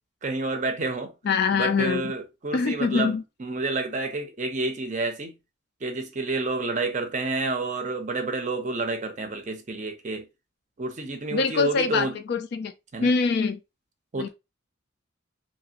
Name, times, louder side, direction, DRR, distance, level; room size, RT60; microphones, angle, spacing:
voice 1, 0.2-1.1 1.5-5.3 5.8-10.3 10.8-12.2 12.9-13.1 14.1-14.3, right 3 dB, 35° right, 0.5 m, -29 dB
voice 2, 1.2-2.1 2.5-3.2 11.3-12.7 13.0-13.6 14.2-14.3, left 5 dB, 55° left, 0.3 m, -24 dB
2.8 x 2.4 x 2.8 m
head